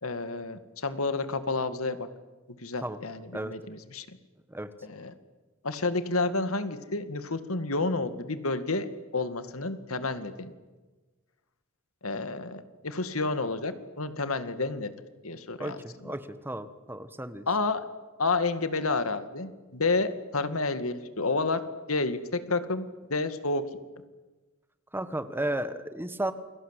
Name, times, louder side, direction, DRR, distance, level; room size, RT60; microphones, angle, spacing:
voice 1, 0.0-2.1 2.6-4.2 4.8-5.1 5.6-10.5 12.0-14.9 15.2-16.1 17.5-17.8 18.2-21.6 21.9-23.6, left 3 dB, 80° left, 11 dB, 2.1 m, -30 dB
voice 2, 15.6-17.4 24.9-26.3, right 1 dB, 10° right, 11 dB, 1.4 m, -33 dB
29.0 x 23.0 x 8.3 m, 1.2 s
head